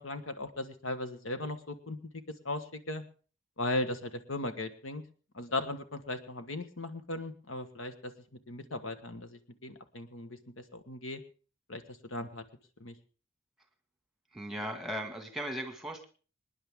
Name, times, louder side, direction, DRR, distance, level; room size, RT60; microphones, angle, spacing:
voice 1, 0.0-2.0 2.4-3.0 3.6-5.0 5.3-8.1 8.5-10.4 10.7-11.2 11.7-12.4 12.8-12.9, left 2 dB, 80° left, 9 dB, 1.4 m, -37 dB
voice 2, 14.3-16.1, equal, ahead, 5 dB, 1.8 m, -37 dB
25.5 x 10.0 x 3.6 m, 0.39 s
head